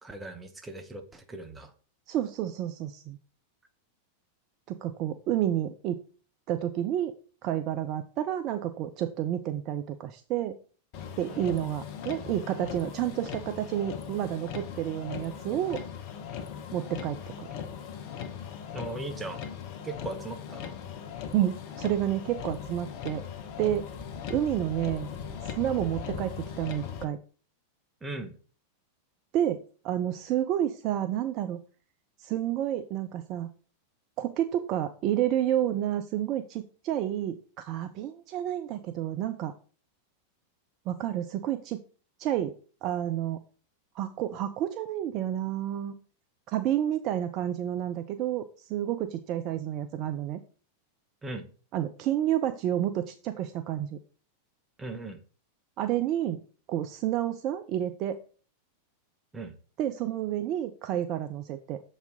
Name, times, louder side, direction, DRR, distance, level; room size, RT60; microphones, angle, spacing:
voice 1, 0.0-1.7 11.3-11.5 18.7-19.4 19.8-20.8 28.0-28.4 51.2-51.5 54.8-55.2 59.3-59.5, right 2 dB, 15° right, 6 dB, 1.0 m, -38 dB
voice 2, 2.1-3.2 4.7-6.0 6.5-7.1 7.4-10.6 11.2-15.8 16.7-17.5 21.3-23.2 23.6-23.9 24.3-25.1 25.6-27.2 29.3-31.6 32.2-33.5 34.2-39.5 40.9-41.8 42.2-42.5 42.8-43.4 44.0-45.9 46.5-50.4 51.7-54.0 55.8-56.4 56.7-58.2 59.8-61.8, right 11 dB, 40° right, 9 dB, 0.4 m, -30 dB
Motor vehicle (road), 10.9-27.0, left 7 dB, 45° left, 0.8 m, -39 dB
7.0 x 4.1 x 3.8 m, 0.40 s
figure-of-eight pair, 90°, 0 cm